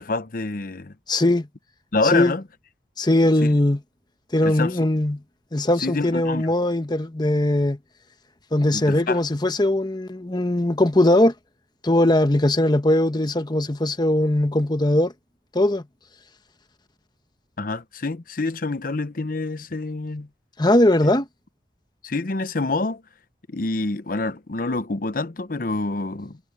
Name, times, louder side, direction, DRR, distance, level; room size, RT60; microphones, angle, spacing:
voice 1, 0.0-0.9 1.9-2.4 3.4-3.5 4.4-4.8 5.8-6.5 8.7-9.2 17.6-20.3 21.0-21.1 22.0-23.0 23.5-26.4, left 3 dB, 50° left, 0.8 m, -27 dB
voice 2, 1.1-1.5 2.1-2.3 3.0-3.8 4.3-5.2 5.5-7.8 8.5-11.3 11.8-15.1 15.5-15.8 20.6-21.3, left 1 dB, 25° left, 1.1 m, -20 dB
head